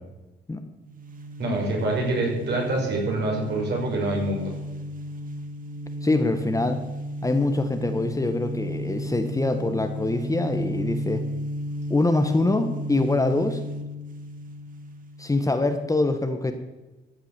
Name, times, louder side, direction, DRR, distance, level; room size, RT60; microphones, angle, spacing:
sound 1, 0.9-15.4, equal, 45° right, 1.8 m, -33 dB
voice 1, 1.4-4.5, right 2 dB, 60° right, -2 dB, 6.0 m, -26 dB
voice 2, 6.0-6.8 7.2-11.2 11.9-13.6 15.2-16.5, left 2 dB, 15° left, 7 dB, 1.2 m, -24 dB
14.5 x 7.4 x 7.4 m, 1.1 s
cardioid pair, 90°, 20 cm